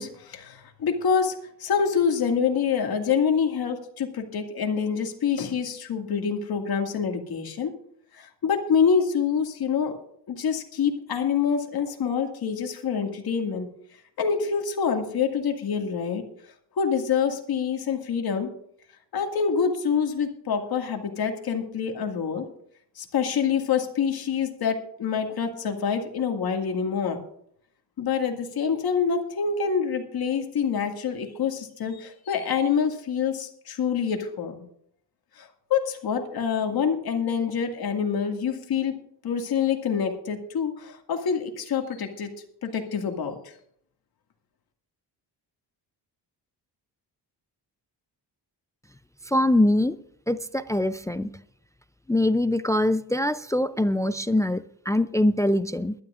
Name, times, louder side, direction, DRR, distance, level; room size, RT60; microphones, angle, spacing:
voice 1, 0.0-7.7 8.1-10.0 10.3-13.7 14.2-16.2 16.8-18.5 19.1-22.5 23.0-27.2 28.0-34.7 35.4-42.3 42.6-43.4, left 6 dB, 65° left, 4 dB, 2.1 m, -26 dB
voice 2, 49.3-49.9 50.3-51.3 52.1-55.9, left 1 dB, 10° left, 13 dB, 0.4 m, -23 dB
21.0 x 12.0 x 2.5 m, 0.68 s
cardioid pair, 105°, 40 cm